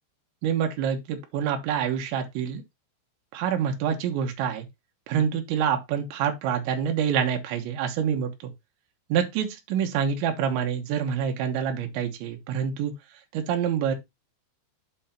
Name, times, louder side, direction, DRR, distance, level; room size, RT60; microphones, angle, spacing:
voice 1, 0.4-2.6 3.3-4.7 5.1-8.5 9.1-12.9 13.3-14.0, right 8 dB, 75° right, 3.5 m, -26 dB
7.8 x 3.4 x 5.8 m
omnidirectional pair, 5.4 m